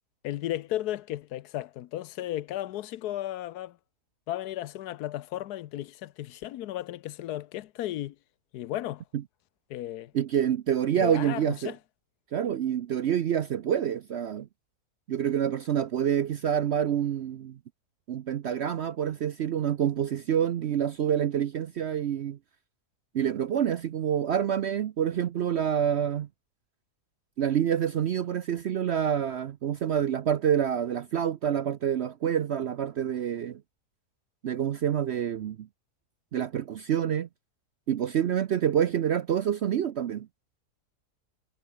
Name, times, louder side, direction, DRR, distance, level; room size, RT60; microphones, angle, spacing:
voice 1, 0.2-3.8 4.3-8.2 8.5-9.0 9.7-10.1 11.0-11.8, left 13 dB, 75° left, 1.2 m, -34 dB
voice 2, 10.1-11.7 12.3-14.5 15.1-17.6 18.1-22.4 23.1-26.3 27.4-33.6 34.4-35.7 36.3-37.3 37.9-40.3, right 9 dB, 60° right, 0.7 m, -27 dB
omnidirectional pair, 1.7 m